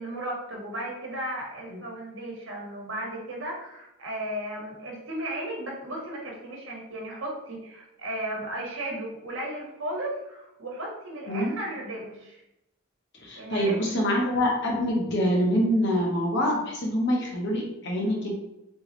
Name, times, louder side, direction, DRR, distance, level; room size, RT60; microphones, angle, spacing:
voice 1, 0.0-12.4 13.3-13.8, right 1 dB, 60° right, -1 dB, 1.2 m, -35 dB
voice 2, 13.2-18.3, equal, 55° left, -1 dB, 1.1 m, -25 dB
3.8 x 3.4 x 3.2 m, 0.88 s
head